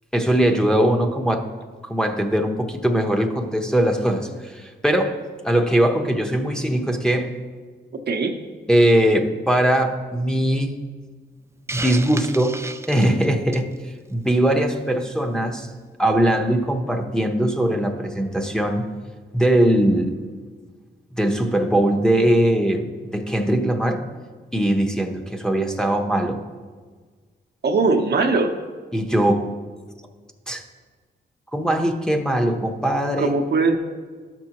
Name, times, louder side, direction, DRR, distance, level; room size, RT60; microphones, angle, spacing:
voice 1, 0.1-1.5 1.8-5.2 5.4-7.3 8.7-10.7 11.7-12.6 12.9-13.7 14.1-15.7 16.0-18.9 19.3-20.2 21.1-24.0 24.5-26.4 28.9-29.5 30.5-30.6 31.5-33.4, right 1 dB, 5° left, 2 dB, 0.9 m, -20 dB
voice 2, 8.1-8.4 27.6-28.6 33.2-33.8, right 3 dB, 60° right, 5 dB, 0.8 m, -20 dB
Hiss, 11.7-13.7, right 2 dB, 15° right, 0.4 m, -32 dB
12.0 x 6.1 x 3.0 m, 1.5 s
cardioid pair, 60°, 19 cm